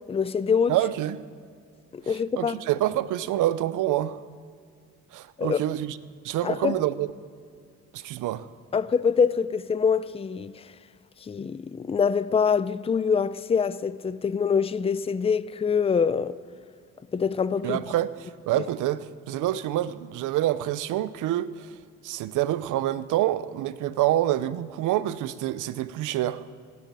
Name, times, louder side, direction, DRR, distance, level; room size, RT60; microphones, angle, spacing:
voice 1, 0.1-0.8 1.9-2.6 5.4-5.6 6.4-6.8 8.7-10.5 11.3-16.3 17.1-17.8, left 6 dB, 20° left, 0.5 m, -24 dB
voice 2, 0.7-1.2 2.0-4.2 5.1-6.0 6.2-7.1 7.9-8.5 17.6-21.8 22.0-26.5, right 13 dB, 85° right, 0.7 m, -27 dB
16.0 x 8.3 x 8.9 m
cardioid pair, 90°, 30 cm